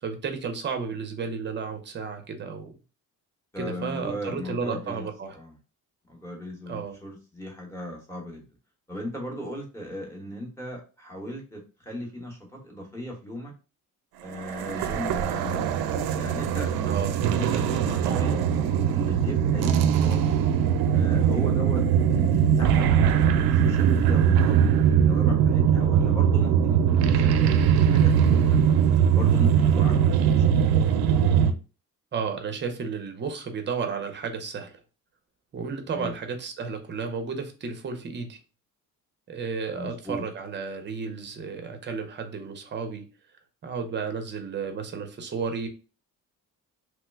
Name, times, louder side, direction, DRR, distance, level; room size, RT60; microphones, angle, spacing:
voice 1, 0.0-2.7 3.6-5.3 6.7-7.0 16.9-17.1 32.1-34.8 35.5-38.4 39.3-43.0 43.6-45.7, right 5 dB, 30° right, 6 dB, 0.6 m, -32 dB
voice 2, 3.5-5.5 6.1-8.4 8.9-12.4 12.6-13.5 14.2-15.7 16.1-20.4 20.9-28.6 29.1-30.7 35.9-36.1 39.7-40.2, equal, 5° left, -2 dB, 0.9 m, -37 dB
sound 1, 14.3-31.5, right 8 dB, 90° right, 0.5 m, -21 dB
3.1 x 2.1 x 3.2 m, 0.34 s
cardioid pair, 145°, 36 cm